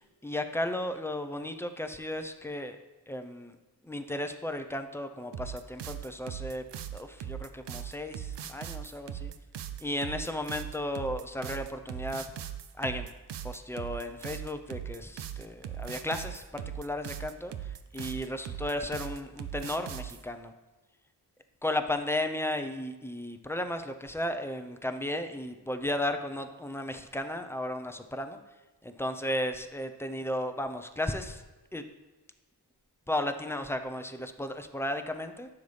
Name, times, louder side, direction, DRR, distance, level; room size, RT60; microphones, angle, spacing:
voice 1, 0.2-2.8 3.1-3.5 3.8-6.6 6.9-9.3 9.8-12.3 12.8-13.1 13.4-20.5 21.6-28.4 28.8-31.4 31.7-31.8 33.1-35.5, left 1 dB, 5° left, 6 dB, 0.8 m, -34 dB
sound 1, 5.3-20.2, right 10 dB, 85° right, 0.6 m, -39 dB
10.0 x 7.2 x 3.4 m, 1.1 s
cardioid pair, 55°, 41 cm